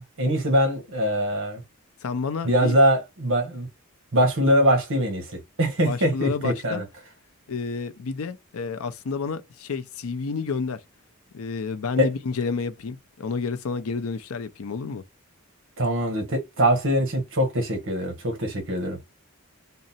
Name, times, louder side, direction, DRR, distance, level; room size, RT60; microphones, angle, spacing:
voice 1, 0.0-1.6 2.4-3.7 4.1-5.3 5.6-6.8 11.9-12.1 15.8-19.0, equal, 60° right, 1.2 m, -22 dB
voice 2, 2.0-2.8 5.9-6.8 7.5-10.8 11.3-15.0, left 4 dB, 75° left, 0.5 m, -30 dB
3.8 x 2.1 x 4.1 m
head